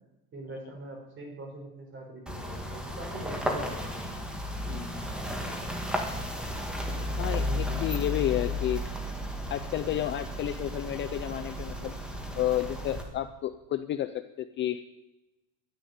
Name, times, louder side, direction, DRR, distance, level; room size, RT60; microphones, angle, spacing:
voice 1, 0.3-4.1 6.9-8.6, right 2 dB, 30° right, 2 dB, 4.7 m, -43 dB
sound 1, 2.3-13.0, left 1 dB, ahead, 1.8 m, -34 dB
voice 2, 4.7-5.1 7.2-8.8 9.5-11.9 12.3-14.8, left 12 dB, 30° left, 11 dB, 0.4 m, -31 dB
12.0 x 10.5 x 9.3 m, 0.97 s
cardioid pair, 165°, 38 cm